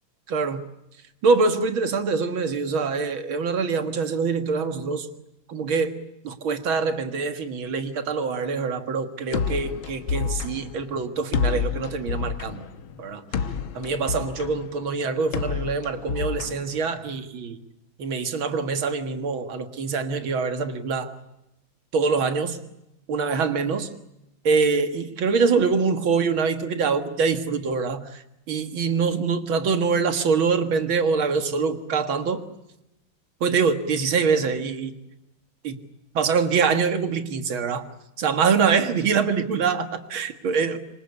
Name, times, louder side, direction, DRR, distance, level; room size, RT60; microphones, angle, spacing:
voice 1, 0.3-0.6 1.2-5.1 5.5-6.0 6.2-12.7 13.0-13.2 13.7-17.6 18.0-21.1 21.9-22.6 23.1-23.9 24.4-32.4 33.4-34.9 35.6-35.8 36.1-37.9 38.2-40.8, right 5 dB, 90° right, 9 dB, 2.5 m, -24 dB
sound 1, 9.3-17.3, left 6 dB, 90° left, 2.0 m, -30 dB
27.0 x 24.0 x 8.3 m, 0.92 s
omnidirectional pair, 2.2 m